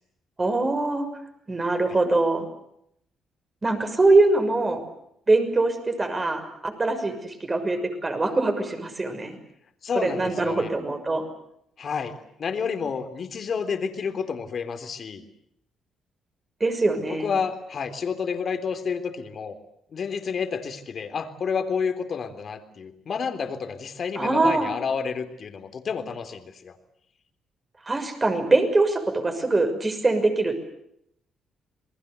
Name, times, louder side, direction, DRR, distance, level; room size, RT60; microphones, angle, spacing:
voice 1, 0.4-1.1 1.5-2.4 3.6-4.8 5.3-9.4 9.9-11.2 16.6-17.3 24.2-24.7 27.9-30.6, right 2 dB, 25° right, 7 dB, 6.3 m, -23 dB
voice 2, 9.8-10.7 11.8-15.2 17.1-19.6 19.9-26.7, left 6 dB, 50° left, 8 dB, 3.4 m, -30 dB
28.0 x 21.0 x 8.3 m, 0.74 s
cardioid pair, 90°, 0 cm